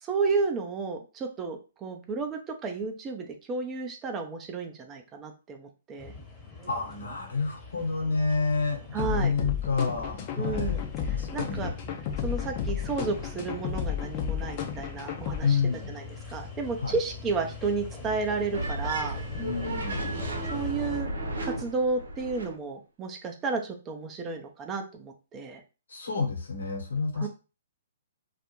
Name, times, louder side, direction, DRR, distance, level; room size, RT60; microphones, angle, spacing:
voice 1, 0.0-6.1 8.9-9.3 10.4-10.8 11.1-11.7 12.2-15.6 15.9-16.1 16.3-19.2 20.5-21.1 21.4-25.6 27.2-27.3, right 4 dB, 20° right, 4 dB, 0.5 m, -32 dB
sound 1, 6.0-21.0, left 4 dB, 5° left, 0.9 m, -43 dB
voice 2, 6.7-10.8 11.0-11.7 15.4-15.9 16.8-16.9 19.3-20.0 25.9-27.3, left 4 dB, 85° left, 2 dB, 1.0 m, -29 dB
sound 2, 9.0-15.4, left 9 dB, 40° left, 0.5 m, -32 dB
sound 3, 18.5-22.5, right 1 dB, 85° right, 0.8 m, -33 dB
2.4 x 2.1 x 3.0 m, 0.32 s
hypercardioid pair, 135°, 0 cm